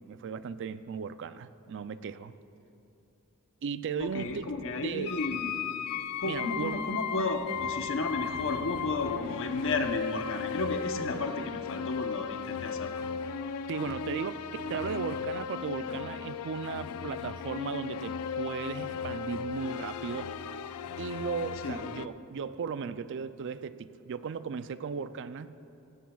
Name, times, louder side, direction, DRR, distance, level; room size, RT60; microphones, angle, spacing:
voice 1, 0.1-2.3 3.6-4.5 4.8-5.2 6.2-6.8 13.7-20.3 21.0-25.6, right 6 dB, 55° right, 13 dB, 0.4 m, -36 dB
voice 2, 4.0-5.6 6.2-13.0 21.6-21.8, left 2 dB, 60° left, 6 dB, 0.9 m, -33 dB
sound 1, 5.1-22.1, left 7 dB, 80° left, 0.4 m, -36 dB
16.5 x 16.0 x 2.3 m, 2.8 s
head